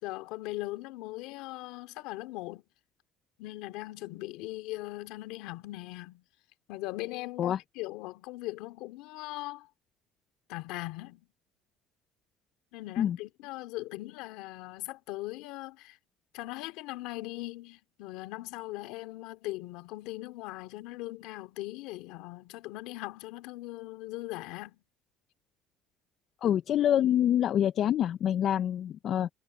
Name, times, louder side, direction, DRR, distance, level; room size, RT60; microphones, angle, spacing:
voice 1, 0.0-2.6 3.4-6.2 6.7-9.7 10.5-11.3 12.7-16.0 16.3-24.8 28.6-28.7, left 19 dB, 85° left, 2.6 m, -40 dB
voice 2, 26.4-29.3, left 10 dB, 55° left, 0.5 m, -26 dB
cardioid pair, 105°, 0 cm